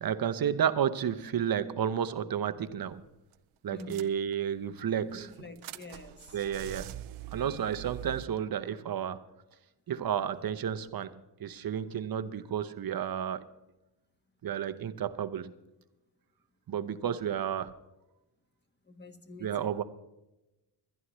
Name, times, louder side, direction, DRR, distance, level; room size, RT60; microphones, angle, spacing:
voice 1, 0.0-3.0 3.6-5.3 6.3-6.9 7.3-9.2 9.9-11.1 11.4-13.5 14.4-15.5 16.7-17.7 19.4-19.8, right 9 dB, 45° right, 0.8 m, -31 dB
sound 1, 2.8-3.1 3.3-3.4 3.8-4.6 5.1-8.2, right 12 dB, 80° right, 0.6 m, -44 dB
voice 2, 3.7-4.0 5.1-6.4 18.9-19.7, left 2 dB, 20° left, 1.4 m, -47 dB
21.5 x 11.0 x 3.1 m
cardioid pair, 85°, 49 cm